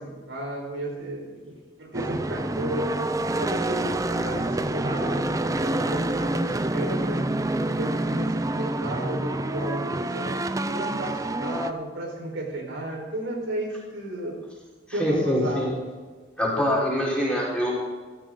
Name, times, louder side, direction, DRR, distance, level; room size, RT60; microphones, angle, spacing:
voice 1, 0.0-3.0 3.3-7.4 7.7-10.4 10.7-14.4 14.9-15.7, right 1 dB, 85° right, 0 dB, 4.6 m, -33 dB
sound 1, 1.9-11.7, right 1 dB, 15° right, 0.5 m, -27 dB
voice 2, 14.9-15.8 16.4-17.7, equal, 5° left, -6 dB, 4.6 m, -24 dB
16.5 x 13.5 x 3.9 m, 1.4 s
head